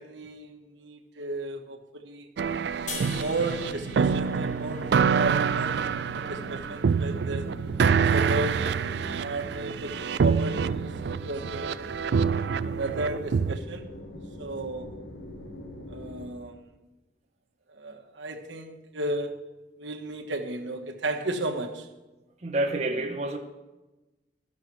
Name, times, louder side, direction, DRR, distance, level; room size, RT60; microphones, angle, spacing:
voice 1, 0.0-2.3 2.9-5.8 6.1-7.4 7.9-8.7 9.2-11.9 12.6-13.9 14.4-15.0 15.9-16.7 17.7-19.4 19.8-21.9, right 2 dB, 90° right, 2 dB, 1.3 m, -34 dB
sound 1, 2.4-13.6, right 6 dB, 65° right, 0.3 m, -26 dB
sound 2, 2.9-6.2, left 3 dB, 40° left, 1.4 m, -43 dB
sound 3, 3.0-16.3, left 1 dB, 80° left, 1.9 m, -44 dB
voice 2, 22.4-23.4, right 1 dB, 35° right, 4 dB, 0.8 m, -28 dB
12.0 x 6.5 x 6.1 m, 1.1 s
head